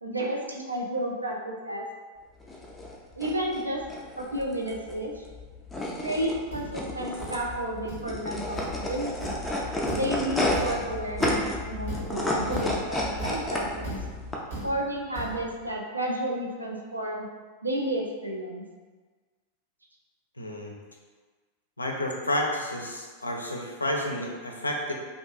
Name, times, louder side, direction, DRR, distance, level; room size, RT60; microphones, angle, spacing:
voice 1, 0.0-1.8 3.2-3.8 4.2-5.3 6.0-9.3 9.9-14.0 14.6-17.3 17.6-18.6, right 1 dB, 80° right, 0 dB, 0.4 m, -31 dB
sound 1, 2.4-14.3, left 1 dB, 10° left, 0.4 m, -31 dB
Thump thud, 6.1-15.7, right 2 dB, 55° right, 0.8 m, -39 dB
voice 2, 20.4-20.7 21.8-24.9, left 1 dB, 80° left, 0 dB, 0.3 m, -30 dB
2.5 x 2.2 x 2.5 m, 1.4 s
figure-of-eight pair, 90°, 0 cm